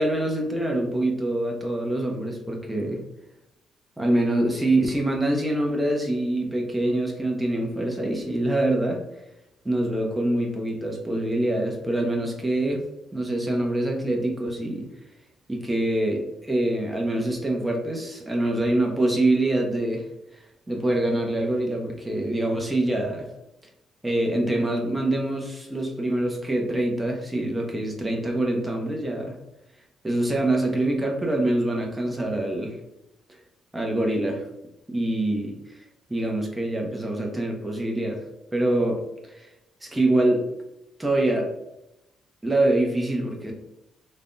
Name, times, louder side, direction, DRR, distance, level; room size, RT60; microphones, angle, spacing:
voice 1, 0.0-3.0 4.0-9.0 9.6-12.8 13.1-14.9 15.5-20.1 20.7-23.3 24.0-29.4 30.0-32.8 33.7-34.4 34.9-35.5 36.1-38.2 38.5-39.0 39.3-39.5 39.8-40.4 41.0-41.5 42.4-43.5, right 1 dB, 15° right, 1 dB, 0.8 m, -25 dB
3.3 x 2.2 x 2.5 m, 0.87 s
cardioid pair, 90°, 0 cm